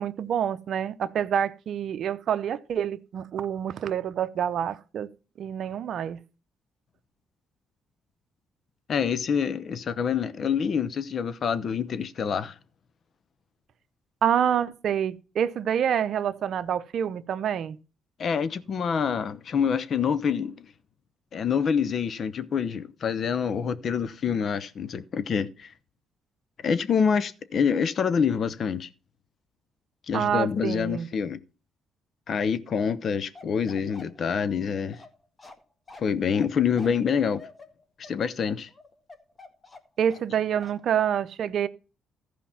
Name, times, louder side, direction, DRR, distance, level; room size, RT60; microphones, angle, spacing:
voice 1, 0.0-5.1 5.4-6.2 14.2-17.8 30.1-31.1 40.0-41.7, right 9 dB, 65° right, 0.8 m, -27 dB
voice 2, 8.9-12.5 18.2-20.7 21.3-25.7 26.6-28.9 30.1-31.4 32.3-35.0 36.0-37.4 38.0-38.7, left 6 dB, 55° left, 0.9 m, -26 dB
Bark, 33.3-40.3 40.6-40.8, left 3 dB, 30° left, 1.8 m, -48 dB
14.5 x 5.1 x 5.7 m
cardioid pair, 90°, 0 cm